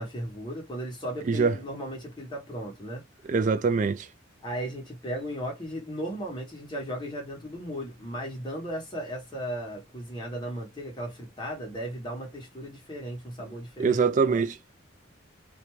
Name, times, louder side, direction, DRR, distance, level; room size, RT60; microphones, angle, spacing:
voice 1, 0.0-3.1 4.4-14.4, equal, 20° left, 1.0 m, -36 dB
voice 2, 1.2-1.5 3.3-4.1 13.8-14.7, right 5 dB, 35° right, 0.3 m, -24 dB
2.5 x 2.2 x 3.0 m
head